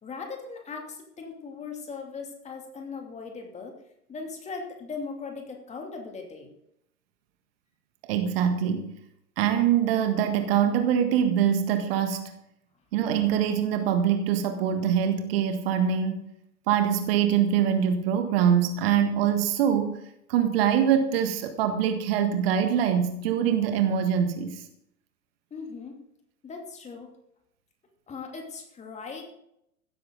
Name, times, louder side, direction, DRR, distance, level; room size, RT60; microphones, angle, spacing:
voice 1, 0.0-3.7 4.1-6.5 25.5-26.0 26.4-27.1 28.1-29.2, left 4 dB, 15° left, 3 dB, 2.7 m, -39 dB
voice 2, 8.1-8.9 9.4-12.3 12.9-16.3 16.7-20.0 20.3-24.6, right 8 dB, 40° right, 7 dB, 1.7 m, -24 dB
16.0 x 13.0 x 3.9 m, 0.76 s
figure-of-eight pair, 105°, 46 cm